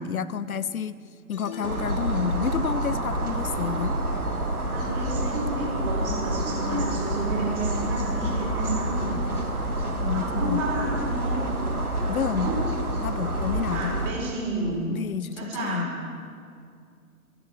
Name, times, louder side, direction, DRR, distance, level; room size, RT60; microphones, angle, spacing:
voice 1, 0.0-0.9 1.3-3.9 10.0-10.6 12.1-12.5 13.0-13.9 14.9-15.9, left 8 dB, 75° left, 15 dB, 0.6 m, -29 dB
sound 1, 1.3-2.9, left 6 dB, 20° left, 1.0 m, -42 dB
sound 2, 1.6-14.1, right 1 dB, 90° right, 1.8 m, -28 dB
voice 2, 4.7-9.2 10.1-11.6 12.2-12.6 13.7-14.9 15.3-16.0, right 2 dB, 25° right, -5 dB, 4.4 m, -31 dB
13.5 x 11.5 x 6.3 m, 2.3 s
figure-of-eight pair, 130°, 43 cm